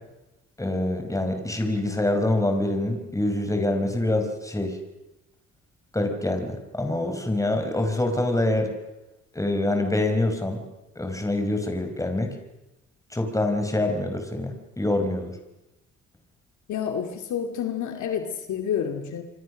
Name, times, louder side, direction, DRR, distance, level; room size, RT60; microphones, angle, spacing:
voice 1, 0.6-4.8 5.9-8.7 9.3-10.6 11.0-12.3 13.1-15.3, left 1 dB, 10° left, 5 dB, 4.9 m, -25 dB
voice 2, 16.7-19.2, left 8 dB, 75° left, 5 dB, 2.4 m, -29 dB
28.0 x 24.0 x 6.4 m, 0.99 s
cardioid pair, 90°, 30 cm